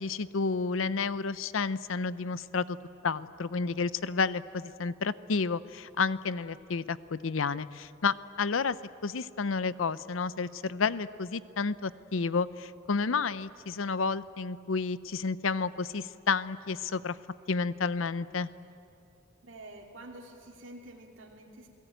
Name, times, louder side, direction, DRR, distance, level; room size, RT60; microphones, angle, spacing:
voice 1, 0.0-2.8 3.0-8.8 9.0-17.2 17.5-18.5, left 4 dB, 75° left, 16 dB, 0.7 m, -31 dB
voice 2, 19.4-21.7, right 1 dB, 65° right, -1 dB, 2.7 m, -48 dB
28.5 x 18.0 x 9.2 m, 2.7 s
head